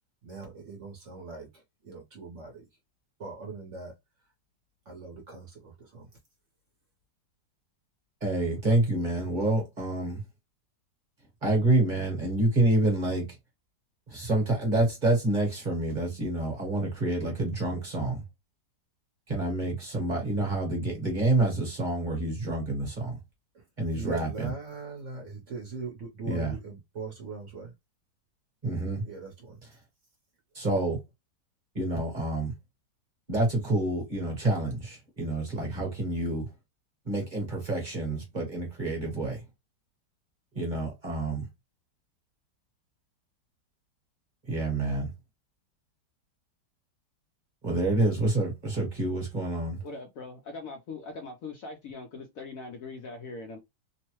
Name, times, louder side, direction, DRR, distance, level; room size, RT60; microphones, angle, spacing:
voice 1, 0.2-2.7 3.2-3.9 4.9-6.1 23.5-23.7 23.9-27.7 29.0-29.6, right 4 dB, 55° right, 1.0 m, -41 dB
voice 2, 8.2-10.2 11.4-13.2 14.1-18.2 19.3-23.2 23.8-24.5 26.2-26.5 28.6-29.0 30.5-31.0 31.7-32.5 33.3-36.5 37.1-39.4 40.5-41.4 44.5-45.1 47.6-49.8, right 2 dB, 30° right, 1.1 m, -28 dB
voice 3, 49.8-53.6, left 3 dB, 65° left, 0.9 m, -41 dB
3.0 x 2.1 x 2.9 m
omnidirectional pair, 1.8 m